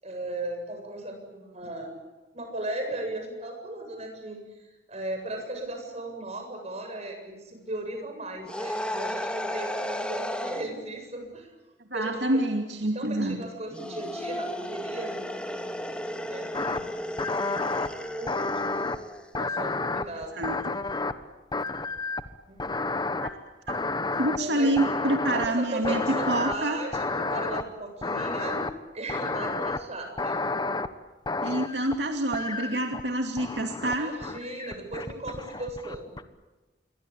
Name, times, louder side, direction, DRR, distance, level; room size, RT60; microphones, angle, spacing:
voice 1, 0.0-1.9 2.3-4.4 4.9-11.6 11.9-12.4 12.9-15.7 16.3-16.9 18.2-18.8 19.3-20.3 22.5-22.9 24.4-24.7 25.3-28.6 28.9-30.4 32.5-32.8 34.0-36.1, right 2 dB, 40° right, 4 dB, 7.6 m, -37 dB
sound 1, 8.5-10.7 13.7-19.3, equal, 5° left, 2.3 m, -34 dB
voice 2, 11.9-13.4 20.4-20.8 23.2-23.3 23.7-23.8 24.2-26.0 26.3-26.8 31.4-34.1, right 1 dB, 80° right, 4 dB, 2.5 m, -27 dB
sound 2, 16.5-16.8 17.2-17.9 18.3-19.0 19.3-21.2 21.5-22.3 22.6-23.3 23.7-24.4 24.8-25.5 25.8-26.5 26.9-27.6 28.0-28.7 29.1-29.8 30.2-30.9 31.3-31.9 32.3-33.0 33.4-33.9 34.2-36.2, left 3 dB, 25° left, 1.2 m, -30 dB
28.0 x 23.5 x 8.8 m, 1.1 s
head